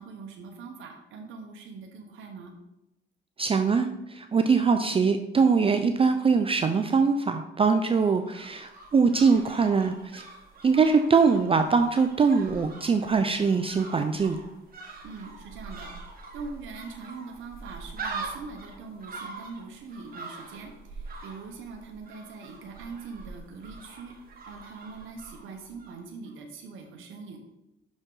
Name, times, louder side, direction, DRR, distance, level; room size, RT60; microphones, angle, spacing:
voice 1, 0.0-2.5 15.0-15.9 16.3-24.1 24.5-27.4, right 4 dB, 80° right, 3 dB, 0.8 m, -42 dB
voice 2, 3.4-10.2 10.6-14.4, right 5 dB, 30° right, 7 dB, 0.4 m, -23 dB
sound 1, 7.8-26.0 26.3-26.4, right 4 dB, 50° right, 1.4 m, -43 dB
6.1 x 5.2 x 3.8 m, 0.89 s
cardioid pair, 90°, 20 cm